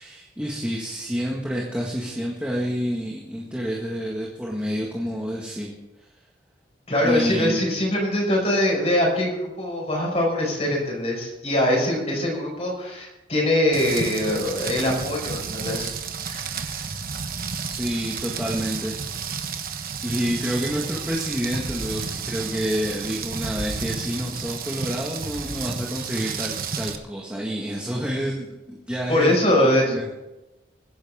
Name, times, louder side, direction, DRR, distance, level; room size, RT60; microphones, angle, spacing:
voice 1, 0.0-5.7 6.0-6.1 7.0-7.6 17.7-19.4 20.0-30.1, equal, 5° right, -3 dB, 1.8 m, -29 dB
voice 2, 6.9-15.9 16.3-16.9 29.1-30.1, left 1 dB, 35° left, -2 dB, 5.4 m, -23 dB
Rain, 13.7-27.0, right 5 dB, 50° right, 1.2 m, -32 dB
23.5 x 10.5 x 3.7 m, 0.99 s
head